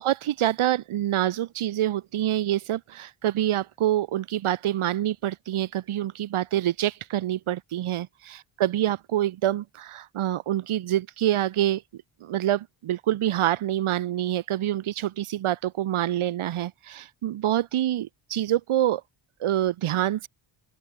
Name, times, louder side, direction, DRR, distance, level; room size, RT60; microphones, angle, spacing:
voice 1, 0.0-11.8 12.2-19.0 19.4-20.3, right 12 dB, 85° right, 7.4 m, -26 dB
open air
cardioid pair, 165°, 48 cm